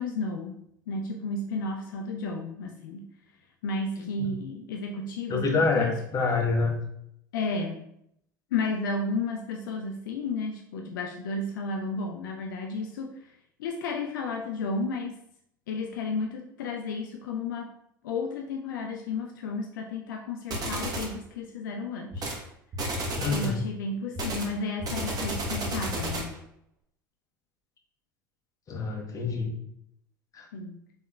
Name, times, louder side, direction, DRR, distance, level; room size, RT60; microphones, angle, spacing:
voice 1, 0.0-3.1 3.6-6.0 7.3-7.9 8.5-13.3 13.6-15.2 15.7-17.7 18.0-22.4 23.3-26.4 30.5-30.8, left 3 dB, 70° left, 2 dB, 0.4 m, -33 dB
voice 2, 4.0-4.3 5.3-6.8 23.2-23.6 28.7-29.5 30.3-30.5, left 4 dB, 30° left, 1 dB, 0.9 m, -27 dB
sound 1, 20.5-21.2 22.1-22.4 22.7-23.6 24.2-26.4, right 1 dB, 35° right, 1.0 m, -32 dB
4.3 x 3.5 x 2.2 m, 0.74 s
figure-of-eight pair, 75°, 11 cm